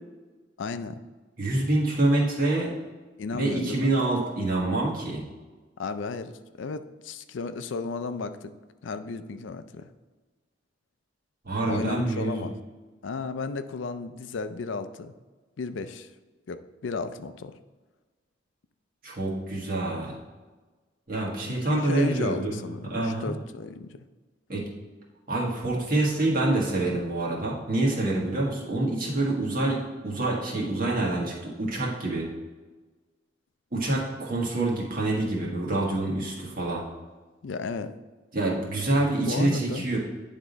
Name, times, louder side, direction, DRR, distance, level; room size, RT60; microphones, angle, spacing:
voice 1, 0.6-1.0 3.2-3.9 5.8-6.3 6.6-8.5 8.8-9.9 11.6-12.5 13.0-15.1 15.6-16.1 16.5-17.5 21.5-24.0 37.4-37.9 39.2-39.9, left 4 dB, 80° left, 10 dB, 0.4 m, -34 dB
voice 2, 1.4-2.7 3.3-5.2 11.4-12.4 19.0-20.1 21.1-22.6 22.9-23.4 24.5-24.6 25.3-32.3 33.7-36.8 38.3-40.0, right 2 dB, 50° right, -3 dB, 1.5 m, -26 dB
9.6 x 3.6 x 4.0 m, 1.3 s
head